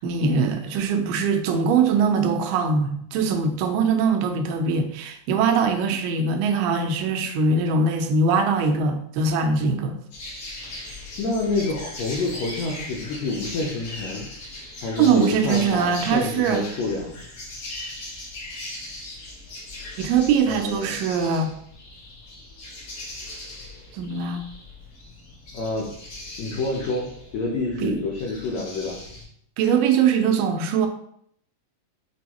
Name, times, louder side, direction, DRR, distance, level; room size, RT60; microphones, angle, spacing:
voice 1, 0.0-10.0 15.0-16.7 20.0-21.6 23.9-24.4 27.8-28.0 29.6-30.9, right 5 dB, 85° right, 6 dB, 2.2 m, -22 dB
sound 1, 10.1-29.2, left 1 dB, 60° left, 1.6 m, -39 dB
voice 2, 11.2-14.3 14.8-17.2 20.5-21.0 25.5-25.9 26.4-29.0, left 3 dB, 90° left, -1 dB, 1.5 m, -28 dB
6.2 x 2.3 x 2.9 m, 0.68 s
omnidirectional pair, 3.9 m